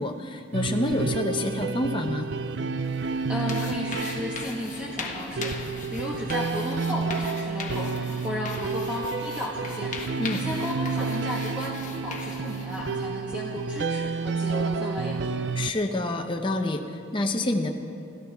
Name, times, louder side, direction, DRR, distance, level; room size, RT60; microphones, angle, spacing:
voice 1, 0.0-2.3 10.2-10.4 15.5-17.7, left 2 dB, 25° left, 3 dB, 0.8 m, -27 dB
sound 1, 0.5-15.7, right 4 dB, 60° right, 0.5 m, -30 dB
sound 2, 2.8-13.1, left 4 dB, 40° left, 1.5 m, -40 dB
voice 2, 3.0-5.6 5.9-15.1, left 1 dB, 5° right, -6 dB, 1.6 m, -34 dB
30.0 x 13.0 x 3.6 m, 2.7 s
head